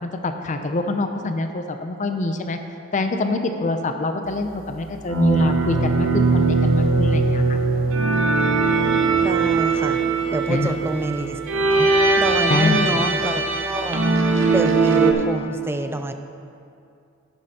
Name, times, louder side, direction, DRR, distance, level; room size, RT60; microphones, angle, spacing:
voice 1, 0.0-2.6 2.9-7.6 10.5-10.7 12.5-13.0, left 2 dB, 35° left, 6 dB, 0.5 m, -25 dB
sound 1, 5.1-15.1, right 3 dB, 70° right, 0.8 m, -20 dB
voice 2, 9.2-10.0 10.3-11.4 11.7-11.9 12.2-14.0 14.5-16.1, right 1 dB, 10° right, 7 dB, 0.4 m, -26 dB
11.5 x 9.6 x 2.9 m, 2.5 s
head